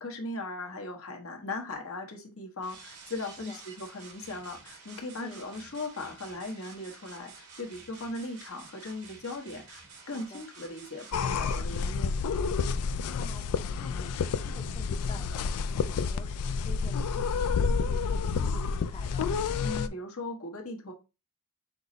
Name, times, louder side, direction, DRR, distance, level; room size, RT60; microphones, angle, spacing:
voice 1, 0.0-12.2 19.6-20.9, left 2 dB, 65° left, 2 dB, 1.1 m, -38 dB
sound 1, 2.6-11.9, right 4 dB, 80° right, 1.4 m, -50 dB
voice 2, 10.0-10.4 13.1-19.3, left 2 dB, 25° left, 0 dB, 0.7 m, -49 dB
sound 2, 11.1-19.9, left 5 dB, 85° left, 0.4 m, -29 dB
5.9 x 2.0 x 3.8 m, 0.28 s
head